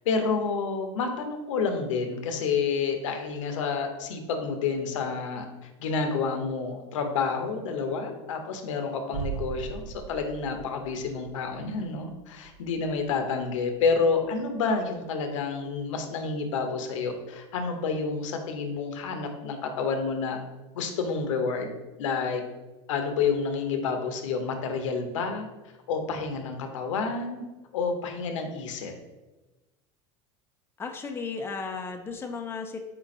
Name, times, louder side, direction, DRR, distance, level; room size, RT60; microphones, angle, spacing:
voice 1, 0.1-5.4 5.8-20.4 20.7-21.7 22.0-22.4 22.9-25.5 25.9-27.4 27.7-28.9, left 5 dB, 90° left, 5 dB, 0.7 m, -29 dB
sound 1, 9.1-14.9 15.1-15.2, right 7 dB, 70° right, 0.4 m, -41 dB
voice 2, 30.8-32.8, left 4 dB, 15° left, 4 dB, 0.4 m, -34 dB
4.4 x 2.5 x 4.1 m, 1.1 s
supercardioid pair, 115°, 16 cm